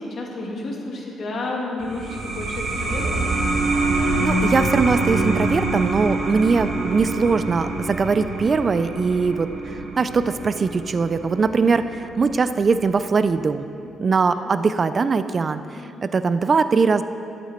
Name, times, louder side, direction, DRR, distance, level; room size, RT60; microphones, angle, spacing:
voice 1, 0.0-3.3 9.6-9.8 14.3-14.5 15.7-15.9, left 2 dB, 55° left, -2 dB, 2.3 m, -31 dB
sound 1, 1.8-13.0, right 2 dB, 65° right, 1.4 m, -26 dB
voice 2, 4.2-9.5 10.0-11.9 12.2-13.6 14.0-15.6 16.0-17.0, right 4 dB, 40° right, 12 dB, 0.4 m, -21 dB
12.5 x 8.3 x 4.4 m, 2.6 s
cardioid pair, 90°, 0 cm